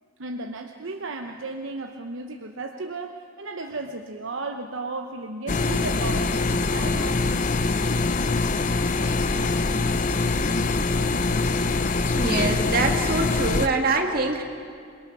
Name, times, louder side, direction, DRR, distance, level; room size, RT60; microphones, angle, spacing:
voice 1, 0.2-7.3, right 3 dB, 70° right, 4 dB, 0.9 m, -34 dB
sound 1, 5.5-13.7, left 3 dB, 40° left, 0.7 m, -24 dB
voice 2, 12.2-14.4, right 3 dB, 45° right, 2 dB, 2.3 m, -24 dB
27.5 x 21.5 x 6.1 m, 2.3 s
head